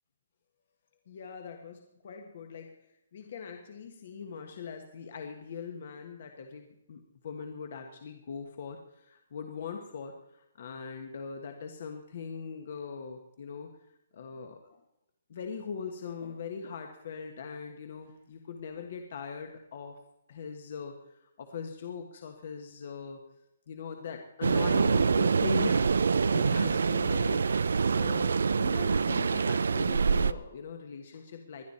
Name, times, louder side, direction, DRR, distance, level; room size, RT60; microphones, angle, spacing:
voice 1, 1.1-2.7 3.1-13.7 14.1-14.8 15.3-19.9 20.3-20.9 21.4-23.2 23.7-27.5 27.8-31.6, left 6 dB, 45° left, 5 dB, 1.3 m, -41 dB
sound 1, 24.4-30.3, right 5 dB, 80° right, 0.5 m, -25 dB
21.0 x 11.5 x 4.3 m, 0.84 s
hypercardioid pair, 175°, 0 cm